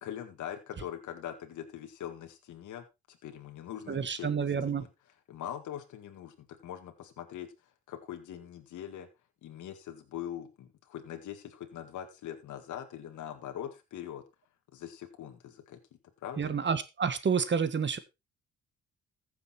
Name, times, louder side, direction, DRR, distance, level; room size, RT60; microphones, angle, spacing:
voice 1, 0.0-4.9 5.3-7.5 7.9-9.1 9.4-14.2 14.7-15.8 16.2-16.6, left 10 dB, 75° left, 5 dB, 1.9 m, -42 dB
voice 2, 3.9-4.9 16.4-18.0, right 6 dB, 40° right, 12 dB, 1.6 m, -29 dB
14.5 x 6.9 x 4.3 m, 0.26 s
cardioid pair, 90°, 30 cm